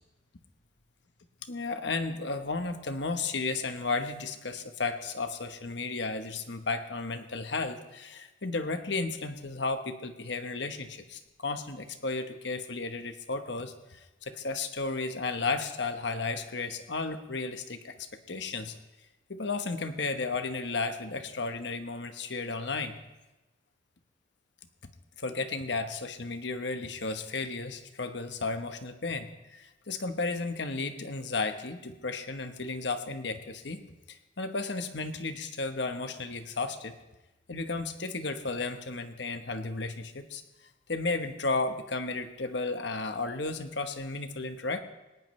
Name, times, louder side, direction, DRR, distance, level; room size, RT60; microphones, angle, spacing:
voice 1, 1.5-18.7 19.3-23.0 25.2-33.8 34.1-37.0 37.5-40.4 40.9-44.8, left 3 dB, 60° left, 8 dB, 1.1 m, -33 dB
19.0 x 18.0 x 3.2 m, 1.0 s
head